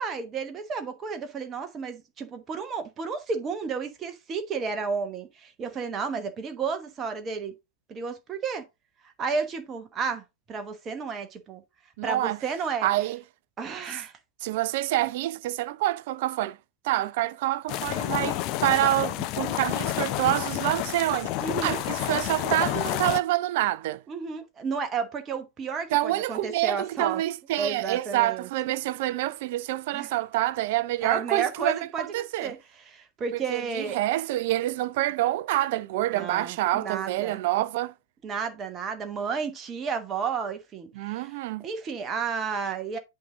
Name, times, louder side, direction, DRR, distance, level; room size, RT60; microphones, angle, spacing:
voice 1, 0.0-7.5 7.9-8.6 9.2-11.6 12.0-12.9 13.6-14.1 21.4-21.8 24.1-27.2 27.5-28.5 29.9-30.1 31.0-34.0 36.1-37.4 38.2-43.0, right 5 dB, 25° right, 1.1 m, -32 dB
voice 2, 12.0-12.4 12.8-13.2 14.4-16.6 16.8-21.3 21.6-24.0 25.9-32.5 33.5-37.9 41.0-41.7, right 15 dB, 50° right, 0.5 m, -27 dB
sound 1, 17.7-23.2, left 14 dB, 40° left, 0.5 m, -29 dB
8.5 x 3.9 x 3.8 m
figure-of-eight pair, 90°, 0 cm